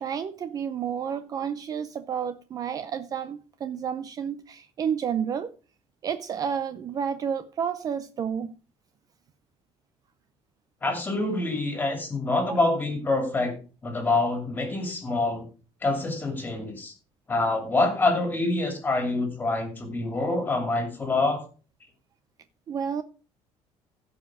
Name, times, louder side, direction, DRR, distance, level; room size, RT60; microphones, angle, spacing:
voice 1, 0.0-5.5 6.0-8.5 12.5-12.6 22.7-23.0, right 7 dB, 35° right, 0.5 m, -30 dB
voice 2, 10.8-15.5 15.8-16.9 17.3-21.4, left 2 dB, 15° left, 2.7 m, -26 dB
16.0 x 5.5 x 4.8 m
cardioid pair, 170°, 11 cm